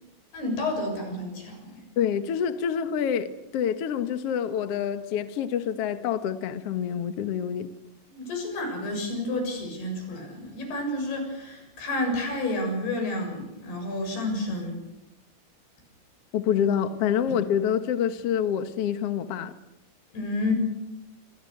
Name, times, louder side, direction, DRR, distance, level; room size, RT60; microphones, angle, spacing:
voice 1, 0.3-1.8 8.1-14.8 20.1-20.5, left 2 dB, 80° left, 9.2 m, -30 dB
voice 2, 2.0-7.7 16.3-19.5, left 8 dB, 60° left, 1.6 m, -27 dB
28.5 x 24.0 x 6.6 m
omnidirectional pair, 4.6 m